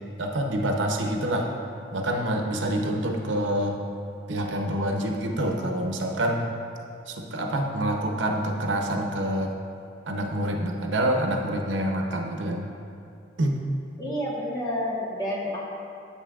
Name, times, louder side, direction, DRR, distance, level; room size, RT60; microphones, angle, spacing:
voice 1, 0.2-1.5 1.9-3.8 4.3-6.5 7.1-9.5 10.1-12.7 13.4-13.6, right 1 dB, 85° right, 2 dB, 0.7 m, -26 dB
voice 2, 14.0-15.6, left 1 dB, 20° left, -5 dB, 1.2 m, -29 dB
9.3 x 7.7 x 2.4 m, 2.6 s
head